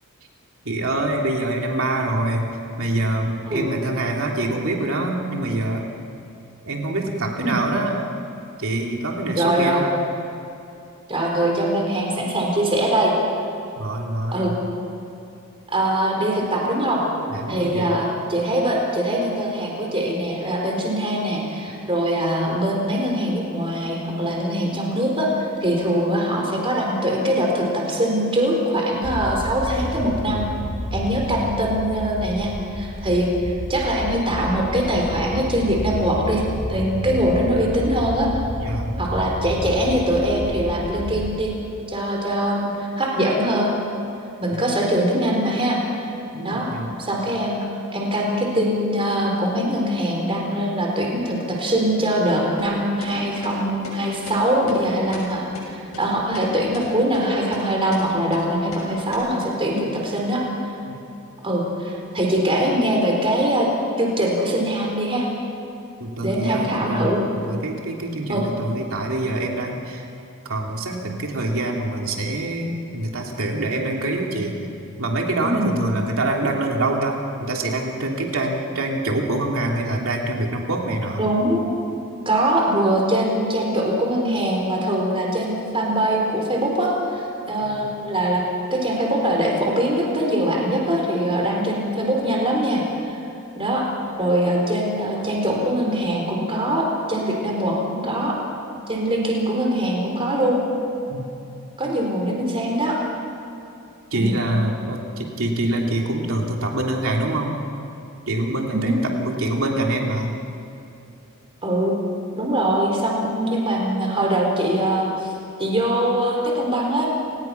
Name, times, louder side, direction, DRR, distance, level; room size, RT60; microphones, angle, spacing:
voice 1, 0.6-2.5 2.8-5.8 6.6-8.0 8.6-9.9 13.8-14.6 17.3-18.0 38.6-39.0 46.3-46.9 60.9-61.0 66.0-70.1 70.5-74.6 75.0-81.2 87.6-87.9 101.1-101.2 104.1-107.6 108.3-110.3, right 2 dB, 65° right, 0 dB, 3.0 m, -25 dB
voice 2, 9.3-9.9 11.1-13.1 14.3-14.5 15.7-17.0 17.5-30.4 30.9-36.4 36.7-38.3 39.0-41.5 41.9-43.7 44.4-46.1 46.4-46.7 47.0-47.6 47.9-60.4 61.4-63.7 64.0-65.3 66.2-67.2 68.3-68.4 75.4-75.7 81.2-81.6 82.3-88.4 88.7-93.2 93.5-93.9 94.2-98.4 98.9-100.6 101.8-103.0 104.1-104.4 108.7-109.0 111.6-112.0 112.3-115.3 115.6-117.1, right 1 dB, 25° right, -1 dB, 4.1 m, -22 dB
sound 1, 29.0-41.5, equal, 30° left, 1.8 m, -30 dB
sound 2, 52.6-52.7 53.0-53.1 53.4-53.6 53.8-54.0 54.3-54.4 54.7-54.8 55.1-55.3 55.5-55.7 55.9-56.0 56.3-56.5 56.7-56.9 57.1-57.2 57.5-57.7 57.9-58.0 58.3-58.4 58.7-58.8 59.1-59.2, left 2 dB, 75° left, 7.1 m, -37 dB
30.0 x 19.0 x 6.0 m, 2.7 s
head